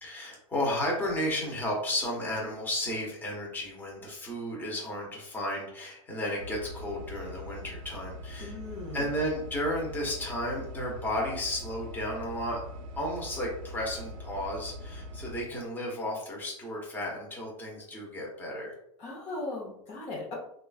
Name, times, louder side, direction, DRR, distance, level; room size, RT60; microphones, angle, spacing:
voice 1, 0.0-8.5 8.9-12.6 12.9-18.7, left 1 dB, 10° left, -3 dB, 0.9 m, -33 dB
sound 1, 6.4-15.4, left 1 dB, 75° right, 0.4 m, -42 dB
voice 2, 8.4-9.1 19.0-20.4, left 2 dB, 40° left, -3 dB, 0.8 m, -38 dB
3.0 x 2.5 x 2.4 m, 0.74 s
supercardioid pair, 120°, 17 cm